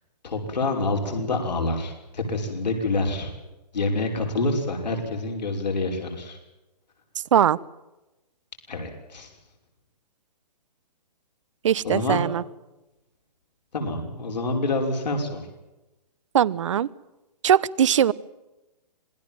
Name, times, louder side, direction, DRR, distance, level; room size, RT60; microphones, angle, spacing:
voice 1, 0.2-3.3 3.7-6.4 8.7-9.3 11.8-12.2 13.7-15.4, left 2 dB, 80° left, 3 dB, 5.9 m, -27 dB
voice 2, 11.6-12.4 16.3-16.9 17.4-18.1, right 9 dB, 45° right, 21 dB, 0.8 m, -20 dB
26.5 x 19.5 x 7.6 m, 1.0 s
hypercardioid pair, 165°, 21 cm